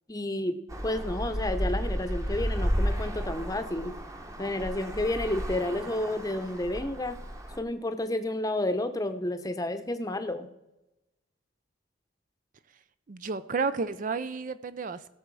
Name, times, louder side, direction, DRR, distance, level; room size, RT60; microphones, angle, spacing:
voice 1, 0.1-0.6 0.8-3.9 4.4-7.2 7.6-10.5, left 1 dB, 20° left, 9 dB, 0.8 m, -31 dB
Traffic noise roadway noise, 0.7-7.6, equal, 15° right, 1.0 m, -33 dB
voice 2, 13.1-15.1, right 4 dB, 45° right, 13 dB, 0.5 m, -31 dB
17.5 x 6.8 x 4.7 m, 0.98 s
head